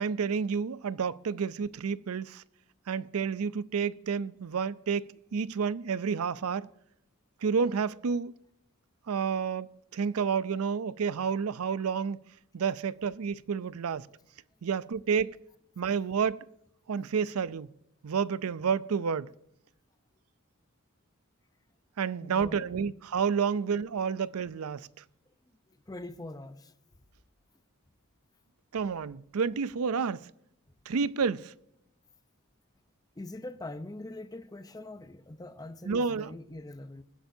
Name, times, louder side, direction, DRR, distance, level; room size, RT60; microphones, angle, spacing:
voice 1, 0.0-2.4 2.9-5.0 5.3-6.7 7.4-8.3 9.1-12.2 12.5-14.1 14.6-15.4 15.8-16.4 16.9-17.7 18.0-19.3 22.0-24.9 28.7-30.3 30.9-31.5 35.8-36.3, right 6 dB, 80° right, 0.5 m, -30 dB
voice 2, 22.2-22.8 25.7-26.7 33.2-37.0, left 2 dB, 15° left, 0.7 m, -43 dB
20.5 x 10.5 x 2.7 m
head